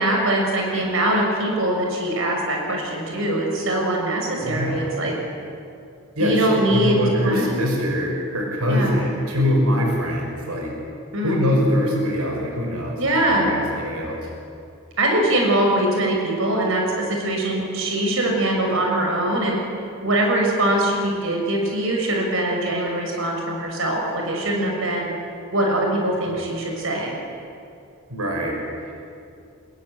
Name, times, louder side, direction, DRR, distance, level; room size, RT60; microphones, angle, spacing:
voice 1, 0.0-5.1 6.2-7.5 8.7-8.9 11.1-11.4 13.0-13.6 15.0-19.6 20.0-25.1 25.5-27.2, right 1 dB, 65° right, 0 dB, 6.2 m, -22 dB
voice 2, 4.4-5.0 6.2-10.7 11.2-13.0 13.3-14.3 26.3-26.5 28.1-28.6 28.8-28.9, equal, 90° right, 1 dB, 6.0 m, -23 dB
26.5 x 22.5 x 10.0 m, 2.5 s
head